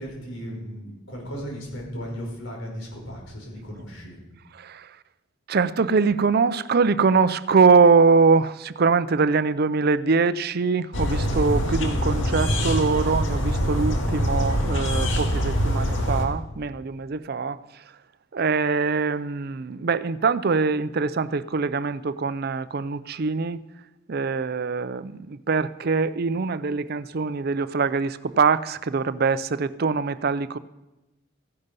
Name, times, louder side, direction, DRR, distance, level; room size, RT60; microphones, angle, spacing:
voice 1, 0.0-4.2, equal, 90° left, 5.4 m, -36 dB
voice 2, 4.5-4.9 5.5-17.6 18.3-23.6 24.1-30.6, right 4 dB, 50° right, 0.5 m, -23 dB
sound 1, 10.9-16.2, equal, 70° left, 2.0 m, -24 dB
15.5 x 11.0 x 5.4 m
head